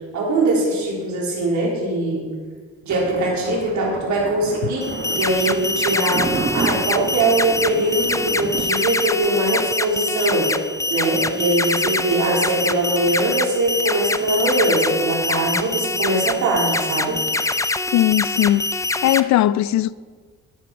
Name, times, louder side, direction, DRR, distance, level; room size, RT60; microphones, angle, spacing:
voice 1, 0.1-2.3 2.8-10.5 10.9-17.2, right 2 dB, 70° right, 3.8 m, -21 dB
Thunder, 2.9-8.6, right 4 dB, 35° right, 1.3 m, -30 dB
sound 1, 4.8-19.2, left 2 dB, 10° left, 0.4 m, -24 dB
voice 2, 17.9-19.9, left 13 dB, 65° left, 0.4 m, -19 dB
11.0 x 8.8 x 4.7 m
cardioid pair, 90°, 30 cm